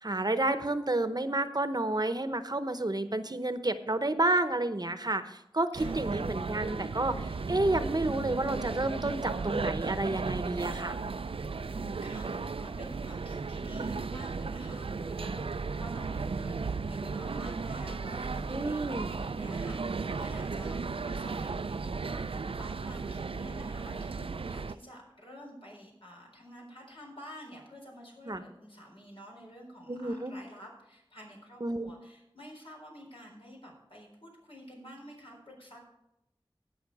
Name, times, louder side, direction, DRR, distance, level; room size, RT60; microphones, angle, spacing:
voice 1, 0.0-11.0 18.5-19.1 28.3-28.4 29.9-30.3 31.6-31.9, right 2 dB, 45° right, 10 dB, 0.8 m, -30 dB
sound 1, 5.7-24.7, right 4 dB, 85° right, 0.4 m, -35 dB
voice 2, 11.1-35.8, equal, 80° left, -2 dB, 4.2 m, -49 dB
17.0 x 6.0 x 4.8 m, 0.87 s
wide cardioid pair, 40°, 9 cm